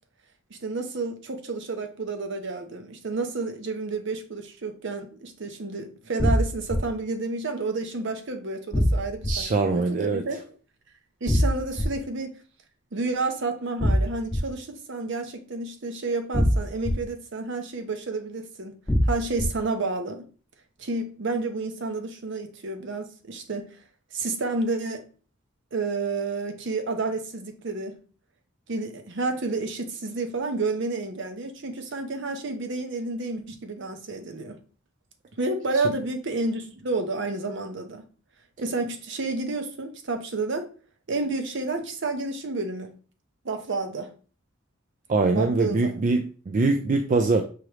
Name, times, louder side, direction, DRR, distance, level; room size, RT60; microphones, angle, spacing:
voice 1, 0.5-10.4 11.2-12.3 12.9-18.8 19.1-20.2 20.8-23.8 24.1-25.1 25.7-28.0 28.7-34.6 35.4-38.0 38.6-40.7 41.1-42.9 43.4-44.1 45.3-46.0, right 3 dB, 60° right, 0.7 m, -30 dB
sound 1, 6.2-6.8 8.7-9.3 11.3-11.8 13.8-14.4 16.3-16.9 18.9-19.5, equal, 10° left, 0.7 m, -21 dB
voice 2, 9.3-10.2 45.1-47.4, right 3 dB, 40° right, 0.3 m, -23 dB
4.8 x 3.0 x 3.2 m
head